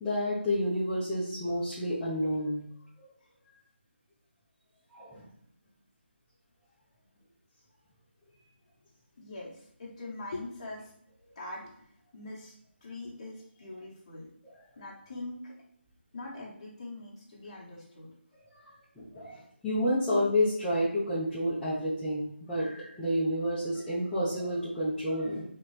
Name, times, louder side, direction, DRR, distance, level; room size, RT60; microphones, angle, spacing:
voice 1, 0.0-2.6 4.9-5.2 19.0-25.4, equal, 5° left, -13 dB, 0.5 m, -30 dB
voice 2, 9.2-10.9 11.3-12.5 12.8-14.3 14.8-15.5 16.1-18.1, left 2 dB, 30° left, -4 dB, 1.2 m, -43 dB
4.3 x 2.9 x 3.1 m, 0.69 s
figure-of-eight pair, 165°, 6 cm